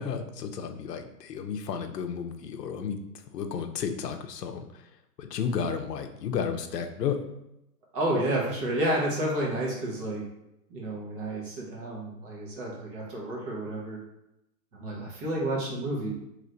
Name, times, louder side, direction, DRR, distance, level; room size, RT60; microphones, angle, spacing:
voice 1, 0.0-3.0 3.3-4.9 5.2-7.2, left 6 dB, 75° left, 6 dB, 0.7 m, -32 dB
voice 2, 7.9-10.2 10.7-14.0 14.7-16.1, right 1 dB, 30° right, -4 dB, 1.3 m, -30 dB
3.1 x 3.1 x 3.9 m, 0.86 s
hypercardioid pair, 155°, 49 cm